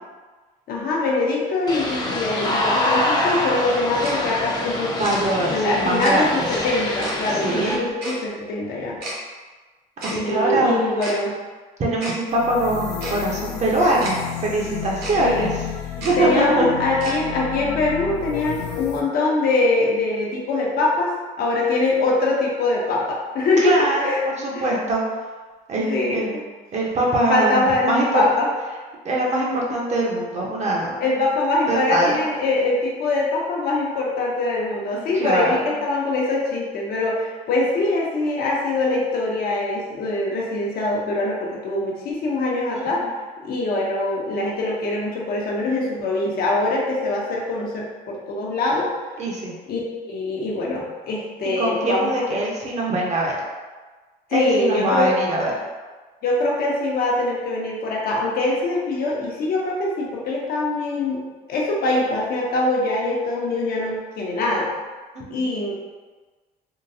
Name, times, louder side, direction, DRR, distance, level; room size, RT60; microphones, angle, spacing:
voice 1, 0.7-4.9 5.5-9.0 10.1-11.3 15.2-15.5 16.2-21.1 21.4-24.2 24.5-24.6 25.9-26.2 27.3-28.5 31.0-43.0 43.4-48.9 49.7-49.8 50.1-52.4 54.3-55.1 56.2-61.2 61.5-64.7 65.3-65.7, left 2 dB, 65° left, -3 dB, 0.8 m, -23 dB
sound 1, 1.7-7.8, left 1 dB, 25° left, 0.6 m, -25 dB
Tick-tock, 4.0-4.1 5.0-5.1 6.0-6.1 7.0-7.1 8.0-8.2 9.0-9.2 10.0-10.2 11.0-11.2 12.0-12.2 13.0-13.1 14.0-14.1 15.0-15.2 16.0-16.1 17.0-17.2, right 1 dB, 85° right, 0.9 m, -31 dB
voice 2, 5.0-6.5 7.3-7.8 10.0-10.8 11.8-14.2 14.4-15.5 16.0-16.7 23.6-24.1 24.4-25.0 25.7-26.4 26.7-28.2 29.0-31.0 31.7-32.2 35.1-35.6 42.7-43.1 49.2-49.5 51.6-53.4 54.3-55.6 65.1-65.5, right 1 dB, 45° right, -3 dB, 0.8 m, -22 dB
sound 2, 12.3-19.0, left 8 dB, 80° left, 0.4 m, -32 dB
3.7 x 2.2 x 2.7 m, 1.3 s
cardioid pair, 110°, 17 cm